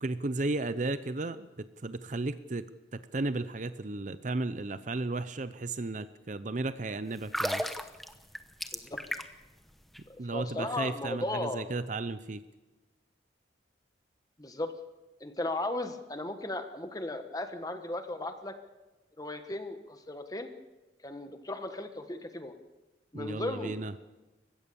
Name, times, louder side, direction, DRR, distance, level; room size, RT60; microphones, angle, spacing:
voice 1, 0.0-2.6 2.9-7.6 10.2-12.4 23.1-24.0, right 2 dB, 40° right, 13 dB, 0.6 m, -34 dB
sound 1, 7.2-9.5 9.8-10.0, equal, ahead, 0.9 m, -34 dB
voice 2, 10.1-11.6 14.4-14.7 15.2-18.5 19.2-20.5 21.0-22.6 23.1-23.8, left 2 dB, 20° left, 7 dB, 1.3 m, -36 dB
29.0 x 15.5 x 7.0 m, 1.1 s
head